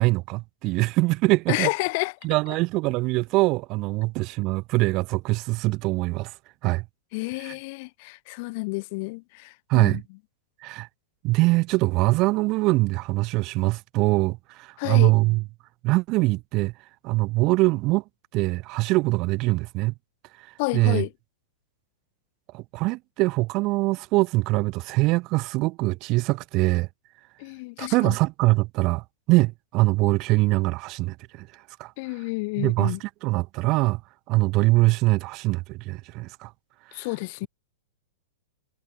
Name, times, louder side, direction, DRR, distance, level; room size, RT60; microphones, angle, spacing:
voice 1, 0.0-1.7 2.2-6.3 6.6-6.8 7.4-7.5 9.7-10.0 10.6-10.9 11.2-15.4 15.8-16.7 17.0-18.0 18.3-19.9 20.4-20.5 20.7-21.0 22.5-26.9 27.8-31.5 31.8-31.9 32.6-34.0 34.3-36.5, right 22 dB, 35° right, 2.8 m, -23 dB
voice 2, 1.5-2.1 7.1-10.0 14.8-15.1 20.6-21.1 27.4-28.2 32.0-33.0 36.9-37.5, left 27 dB, 45° left, 1.5 m, -30 dB
figure-of-eight pair, 100°, 0 cm